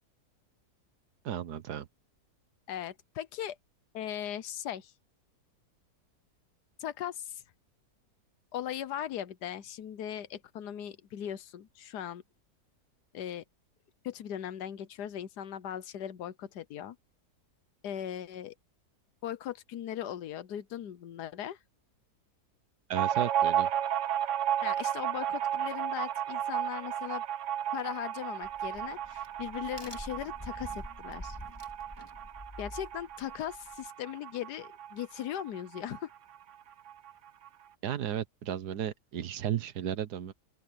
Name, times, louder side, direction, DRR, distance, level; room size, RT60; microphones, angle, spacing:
voice 1, 1.2-1.9 22.9-23.7 37.8-40.3, right 10 dB, 80° right, 1.6 m, -34 dB
voice 2, 2.7-3.6 3.9-4.9 6.8-7.4 8.5-12.2 13.1-13.4 14.0-17.0 17.8-18.5 19.2-21.6 24.6-27.2 27.7-31.4 32.6-36.1, left 10 dB, 85° left, 1.4 m, -38 dB
sound 1, 22.9-36.1 36.3-36.4 36.7-37.5, right 10 dB, 55° right, 1.0 m, -33 dB
Crack, 28.4-33.9, left 1 dB, 15° left, 1.9 m, -47 dB
open air
omnidirectional pair, 1.7 m